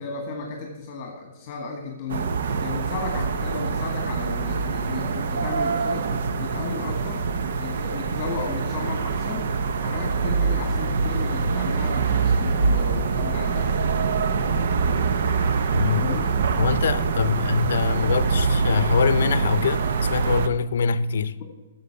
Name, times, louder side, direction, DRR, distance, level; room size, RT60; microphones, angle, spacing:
voice 1, 0.0-2.3 2.6-6.1 6.4-7.2 7.6-9.5 9.8-13.7 16.0-16.3, left 5 dB, 30° left, 1.5 m, -34 dB
sound 1, 2.1-20.5, right 4 dB, 60° right, 0.7 m, -24 dB
voice 2, 15.7-16.2 16.6-19.8 20.1-21.4, left 6 dB, 70° left, 0.6 m, -24 dB
10.5 x 7.0 x 5.7 m
hypercardioid pair, 160°, 0 cm